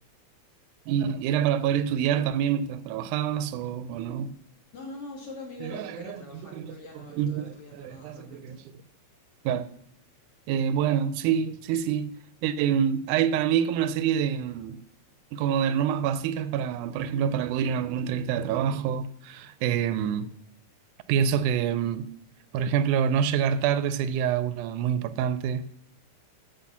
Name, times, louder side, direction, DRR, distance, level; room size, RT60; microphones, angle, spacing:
voice 1, 0.9-4.4 5.6-6.2 6.6-6.7 7.1-8.6 9.5-9.7 10.5-12.1 12.4-14.8 15.3-20.3 21.1-22.1 22.5-25.7, right 8 dB, 85° right, 2.0 m, -26 dB
voice 2, 4.7-8.6, left 2 dB, 50° left, 3.1 m, -43 dB
8.5 x 5.8 x 7.1 m
omnidirectional pair, 3.5 m